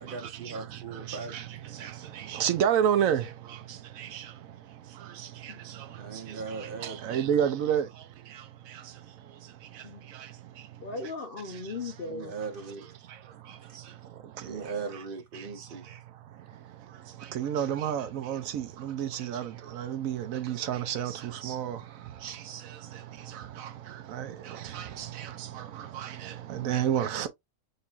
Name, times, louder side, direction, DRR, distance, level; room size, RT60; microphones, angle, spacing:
voice 1, 0.0-1.4 6.0-7.0 12.0-12.9 13.7-13.8 14.4-15.9, right 4 dB, 45° right, 0.9 m, -39 dB
voice 2, 1.1-1.4 1.8-1.9 2.3-3.2 4.0-4.2 6.8-7.9 17.3-19.5 19.8-21.8 22.2-22.4 24.1-24.3 24.7-25.3 25.6-25.7 25.9-27.3, right 9 dB, 75° right, 1.0 m, -29 dB
voice 3, 10.8-12.3 26.5-26.7, left 3 dB, 55° left, 0.7 m, -38 dB
6.6 x 2.5 x 2.4 m
omnidirectional pair, 1.5 m